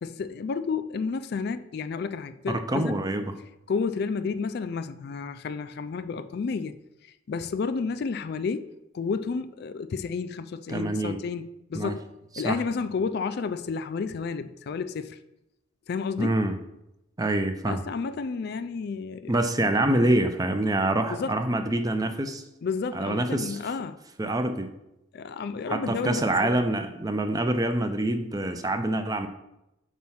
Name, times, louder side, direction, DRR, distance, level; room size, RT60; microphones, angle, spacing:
voice 1, 0.0-3.0 3.7-8.7 8.9-12.1 12.4-15.2 15.9-16.3 17.7-19.4 21.1-21.4 22.6-24.0 25.1-26.6, left 5 dB, 55° left, 0.4 m, -31 dB
voice 2, 2.5-3.4 10.7-11.2 11.7-12.0 12.4-12.6 16.2-16.5 17.2-17.9 19.3-22.4 22.9-23.6 24.2-24.7 25.7-29.3, right 1 dB, 20° right, 0.5 m, -26 dB
6.1 x 4.3 x 5.6 m
head